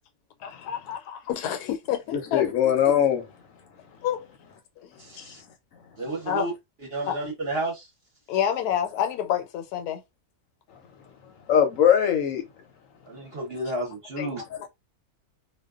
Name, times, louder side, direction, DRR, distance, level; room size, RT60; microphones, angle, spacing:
voice 1, 0.4-2.5 4.0-4.3 4.8-5.3 6.3-6.5 7.1-7.2 8.3-10.0 14.2-14.3, left 10 dB, 85° left, 1.1 m, -28 dB
voice 2, 2.1-3.3 11.5-12.4, left 9 dB, 70° left, 0.9 m, -21 dB
voice 3, 5.0-5.4 6.0-6.5 6.9-7.9 13.1-14.4, right 1 dB, 50° right, 0.8 m, -31 dB
2.5 x 2.1 x 2.3 m
omnidirectional pair, 1.6 m